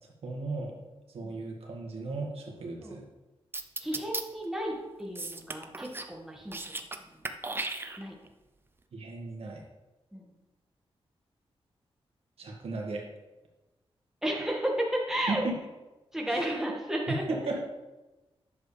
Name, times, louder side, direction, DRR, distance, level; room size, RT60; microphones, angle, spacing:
voice 1, 0.2-0.7 1.1-3.1 8.9-9.6 12.4-13.0 15.3-15.6 16.3-16.5 17.1-17.6, right 3 dB, 75° right, -1 dB, 1.8 m, -35 dB
sound 1, 3.5-4.2 5.2-6.1 6.4-7.0 7.2-8.3, right 3 dB, 20° right, 0.6 m, -36 dB
voice 2, 3.8-6.6 7.1-7.2 8.0-8.1 10.1-10.2 14.2-14.7 15.1-15.4 16.1-17.2, right 1 dB, 5° right, -2 dB, 1.8 m, -33 dB
11.0 x 7.1 x 3.4 m, 1.1 s
wide cardioid pair, 130°, 10 cm